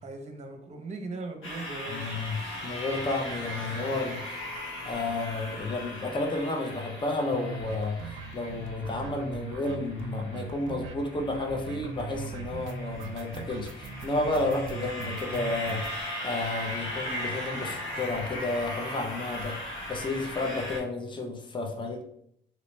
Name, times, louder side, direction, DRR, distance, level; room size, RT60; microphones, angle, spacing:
voice 1, 0.0-2.2, right 3 dB, 35° right, 3 dB, 0.8 m, -39 dB
sound 1, 1.4-20.8, left 1 dB, 90° left, 1.3 m, -38 dB
voice 2, 1.9-4.4 4.8-19.6 19.9-22.0, left 2 dB, 25° left, 2 dB, 0.7 m, -32 dB
sound 2, 5.2-5.4 5.7-5.8 6.0-6.1 6.3-6.4 6.7-16.0, right 5 dB, 80° right, 0.4 m, -40 dB
3.0 x 2.9 x 3.2 m, 0.71 s
cardioid pair, 90°, 20 cm